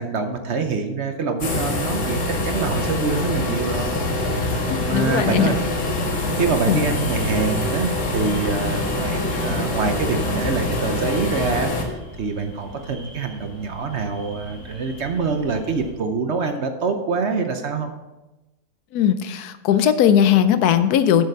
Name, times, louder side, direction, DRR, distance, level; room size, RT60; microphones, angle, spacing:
voice 1, 0.0-4.1 4.5-5.6 6.3-17.9, right 4 dB, 55° right, 6 dB, 0.9 m, -25 dB
sound 1, 1.4-11.9, left 1 dB, 65° left, 1.8 m, -24 dB
voice 2, 4.9-5.5 6.7-6.8 18.9-21.2, left 9 dB, 80° left, 11 dB, 1.2 m, -18 dB
sound 2, 6.7-15.9, left 1 dB, 25° left, 2.8 m, -41 dB
7.9 x 6.6 x 5.5 m, 1.1 s
omnidirectional pair, 1.6 m